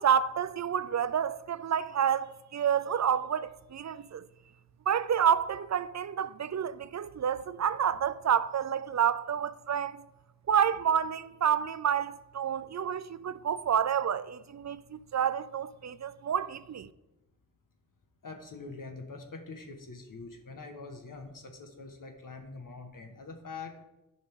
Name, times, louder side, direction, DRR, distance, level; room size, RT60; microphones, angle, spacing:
voice 1, 0.0-4.3 4.9-10.0 10.5-16.9, right 8 dB, 55° right, 0.5 m, -29 dB
voice 2, 18.2-23.8, left 3 dB, 75° left, 1.5 m, -44 dB
14.0 x 5.5 x 3.7 m
wide cardioid pair, 105°, 32 cm